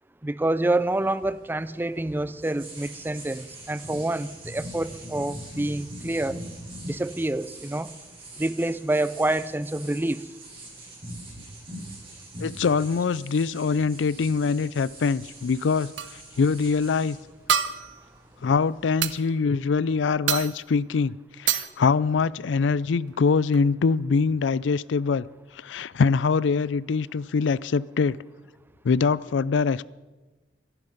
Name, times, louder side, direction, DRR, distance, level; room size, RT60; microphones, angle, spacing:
voice 1, 0.2-6.4 6.8-7.9 8.4-10.3, right 1 dB, 10° right, 16 dB, 0.4 m, -27 dB
sound 1, 0.8-19.2, right 1 dB, 30° right, 7.6 m, -43 dB
voice 2, 12.4-15.9 16.4-17.2 18.4-25.2 25.6-28.2 28.8-29.8, left 5 dB, 90° left, 21 dB, 0.4 m, -23 dB
sound 2, 16.0-16.2 17.5-18.1 19.0-19.2 20.3-20.7 21.5-21.8 23.1-23.2 23.5-23.6, right 9 dB, 80° right, 0.8 m, -26 dB
24.0 x 11.0 x 5.3 m, 1.2 s
head